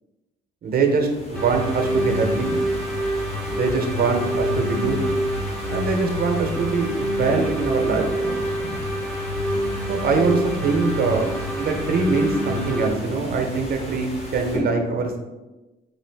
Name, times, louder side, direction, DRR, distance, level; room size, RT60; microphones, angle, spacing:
voice 1, 0.6-2.6 3.5-5.0 5.7-8.1 9.9-11.3 11.6-15.2, right 4 dB, 50° right, 4 dB, 0.6 m, -23 dB
sound 1, 0.8-14.6, left 1 dB, 30° left, 1.1 m, -36 dB
sound 2, 1.3-12.9, equal, 5° left, 0.6 m, -26 dB
3.1 x 2.4 x 3.4 m, 1.1 s
cardioid pair, 90°, 20 cm